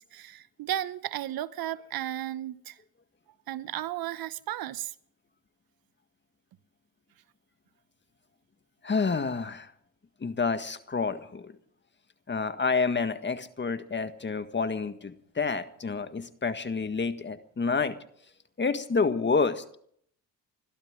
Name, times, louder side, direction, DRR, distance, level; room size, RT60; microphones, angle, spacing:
voice 1, 0.0-2.8 3.5-4.9, right 12 dB, 60° right, 16 dB, 0.9 m, -34 dB
voice 2, 8.8-9.7 10.2-11.5 12.3-17.9 18.6-19.6, left 4 dB, 25° left, 10 dB, 1.7 m, -28 dB
30.0 x 12.5 x 3.8 m, 0.65 s
supercardioid pair, 75°, 40 cm